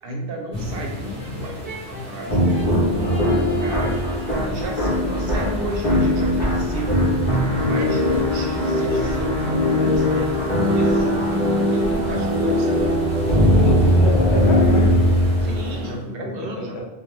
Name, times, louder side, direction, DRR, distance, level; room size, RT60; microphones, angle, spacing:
voice 1, 0.0-2.6 3.6-4.0 4.5-7.1 7.5-12.9 15.4-16.8, right 1 dB, 70° right, 1 dB, 0.7 m, -34 dB
sound 1, 0.5-16.0, left 1 dB, 5° left, 1.0 m, -38 dB
Brass instrument, 1.2-4.5, equal, 25° right, 0.4 m, -39 dB
sound 2, 2.3-16.0, equal, 50° left, 0.8 m, -20 dB
voice 2, 2.9-3.3 13.5-14.9 15.7-15.8 16.5-16.8, left 1 dB, 90° left, 0 dB, 0.9 m, -27 dB
2.2 x 2.0 x 3.0 m, 0.97 s
omnidirectional pair, 1.1 m